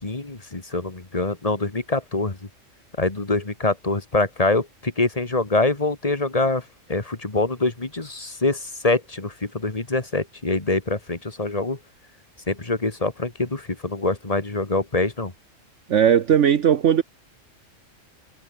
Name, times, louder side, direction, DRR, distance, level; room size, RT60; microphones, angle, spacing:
voice 1, 0.0-2.4 3.0-6.6 6.9-11.8 12.5-15.3, left 2 dB, 30° left, 2.1 m, -24 dB
voice 2, 15.9-17.0, right 9 dB, 65° right, 1.3 m, -17 dB
omnidirectional pair, 1.3 m